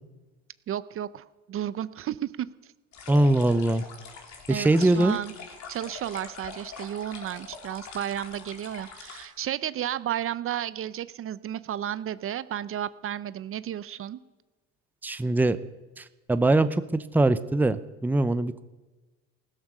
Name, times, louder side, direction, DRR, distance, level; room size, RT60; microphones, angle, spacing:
voice 1, 0.7-2.5 4.5-5.3 5.7-14.2, right 11 dB, 40° right, 16 dB, 0.6 m, -33 dB
sound 1, 2.9-9.3, left 5 dB, 55° left, 3.3 m, -43 dB
voice 2, 3.1-3.8 4.5-5.2 15.0-15.6 16.0-18.6, right 2 dB, 5° right, 13 dB, 0.7 m, -22 dB
16.0 x 13.0 x 6.2 m, 1.2 s
supercardioid pair, 95°, 34 cm